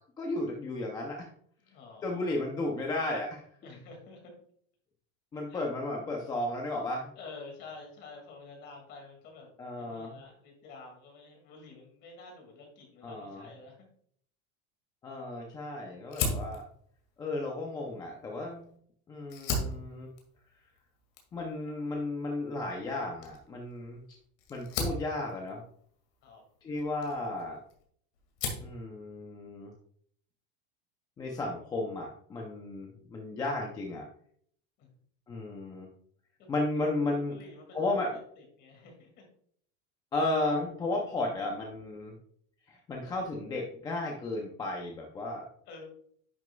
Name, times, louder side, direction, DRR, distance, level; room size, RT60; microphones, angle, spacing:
voice 1, 0.2-1.3 2.0-3.5 5.3-7.1 9.6-10.2 13.0-13.5 15.0-16.6 17.2-18.7 19.1-20.1 21.3-24.0 24.5-25.6 26.6-27.6 28.6-29.7 31.2-34.1 35.3-35.9 36.5-37.4 37.7-38.1 40.1-42.1 42.7-45.5, left 2 dB, 10° left, 0 dB, 0.5 m, -34 dB
voice 2, 1.6-2.3 3.6-4.3 5.5-5.7 6.2-6.3 7.1-13.9 26.2-26.4 34.8-34.9 36.4-36.6 37.1-39.2 42.7-42.8 45.7-45.8, left 3 dB, 30° left, 2 dB, 2.2 m, -50 dB
Fire, 16.1-18.7 19.2-27.8 28.1-28.8, left 3 dB, 55° left, 2.0 m, -38 dB
10.0 x 6.2 x 2.2 m, 0.62 s
supercardioid pair, 180°, 33 cm